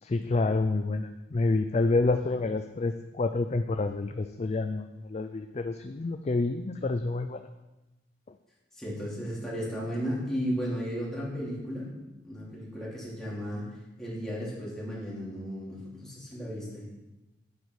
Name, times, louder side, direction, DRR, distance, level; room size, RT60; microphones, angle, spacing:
voice 1, 0.0-7.5, left 3 dB, 35° left, 8 dB, 0.4 m, -28 dB
voice 2, 8.7-11.9 12.2-13.7 14.0-16.8, equal, 5° left, -7 dB, 3.5 m, -34 dB
9.5 x 8.9 x 4.8 m, 1.0 s
head